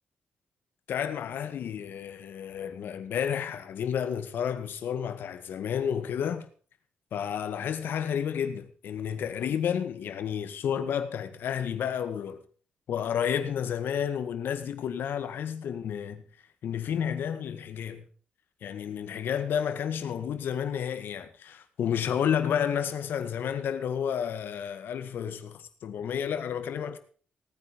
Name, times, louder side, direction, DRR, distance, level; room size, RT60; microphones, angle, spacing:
voice 1, 0.9-6.5 7.1-12.4 12.9-16.3 16.6-18.1 18.6-27.0, left 8 dB, 80° left, 1.9 m, -31 dB
18.0 x 9.7 x 5.3 m
wide cardioid pair, 130°, 4 cm